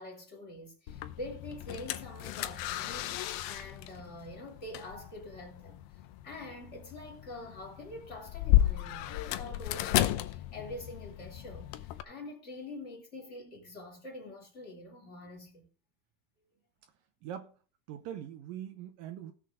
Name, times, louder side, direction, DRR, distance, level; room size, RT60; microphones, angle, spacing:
voice 1, 0.0-5.8 6.2-15.7, left 2 dB, 20° left, 3.0 m, -45 dB
sound 1, 0.9-12.0, left 14 dB, 85° left, 2.6 m, -33 dB
voice 2, 17.2-17.6 17.9-19.3, right 10 dB, 80° right, 2.5 m, -42 dB
16.5 x 6.6 x 4.9 m
omnidirectional pair, 4.1 m